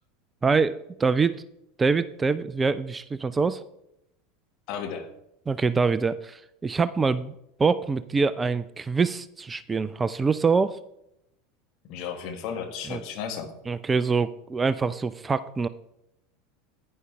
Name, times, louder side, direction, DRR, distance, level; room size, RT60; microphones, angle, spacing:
voice 1, 0.4-1.4 1.8-3.6 5.5-7.3 7.6-10.8 12.9-13.0 13.7-15.7, right 4 dB, 20° right, 15 dB, 0.4 m, -25 dB
voice 2, 4.7-5.1 11.9-13.5, left 7 dB, 50° left, 5 dB, 1.6 m, -34 dB
11.0 x 9.8 x 3.4 m, 0.81 s
figure-of-eight pair, 75°, 0 cm